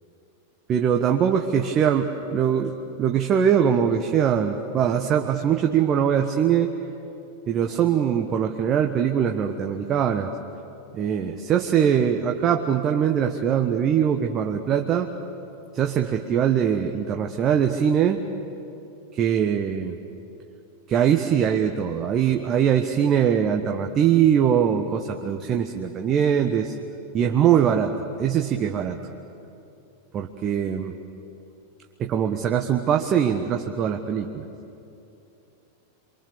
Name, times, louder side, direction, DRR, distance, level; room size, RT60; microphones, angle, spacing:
voice 1, 0.7-6.7 7.5-10.3 10.9-15.1 15.7-18.2 19.1-20.0 20.9-26.8 27.1-29.0 30.1-30.9 32.0-34.5, right 8 dB, 30° right, 4 dB, 1.2 m, -22 dB
28.0 x 24.5 x 6.9 m, 2.8 s
figure-of-eight pair, 90°, 0 cm